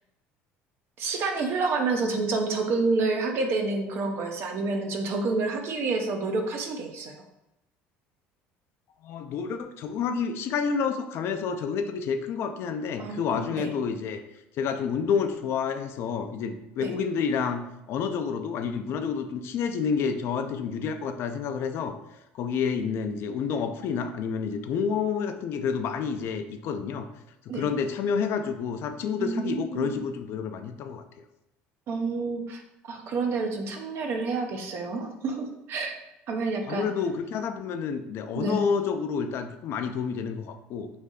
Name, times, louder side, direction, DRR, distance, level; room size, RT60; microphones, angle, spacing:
voice 1, 1.0-7.1 13.0-13.7 16.8-16.9 27.5-27.7 29.2-30.0 31.9-36.0 36.3-36.9 38.4-38.7, right 3 dB, 55° right, 4 dB, 0.6 m, -29 dB
voice 2, 9.0-14.2 14.5-22.0 22.3-27.1 27.5-31.0 36.6-40.9, left 6 dB, 60° left, 8 dB, 0.4 m, -29 dB
3.3 x 2.6 x 3.8 m, 0.90 s
supercardioid pair, 105°, 5 cm